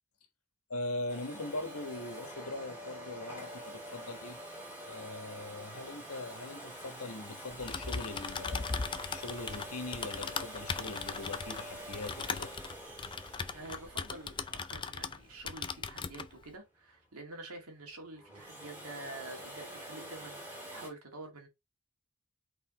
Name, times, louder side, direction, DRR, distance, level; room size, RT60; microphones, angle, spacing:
voice 1, 0.7-4.4 4.9-12.5, left 2 dB, 85° left, 1.5 m, -41 dB
Domestic sounds home sounds, 1.1-15.8 18.2-20.9, equal, 10° right, 2.8 m, -46 dB
Typing, 7.5-15.2 15.5-16.3, left 5 dB, 20° left, 0.4 m, -38 dB
voice 2, 13.5-21.5, right 2 dB, 80° right, 2.1 m, -47 dB
5.7 x 4.2 x 4.1 m
head